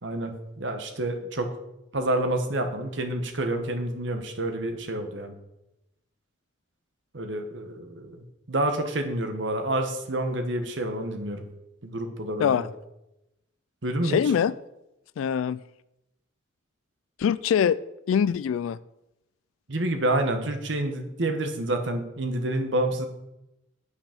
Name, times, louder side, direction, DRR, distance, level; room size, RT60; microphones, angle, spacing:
voice 1, 0.0-1.5 1.9-5.3 7.1-11.5 11.8-12.7 13.8-14.2 19.7-23.1, right 1 dB, 65° right, 6 dB, 1.3 m, -28 dB
voice 2, 14.0-14.5 15.2-15.6 17.2-17.8 18.1-18.8, left 8 dB, 85° left, 17 dB, 0.3 m, -23 dB
8.2 x 6.0 x 6.6 m, 0.90 s
head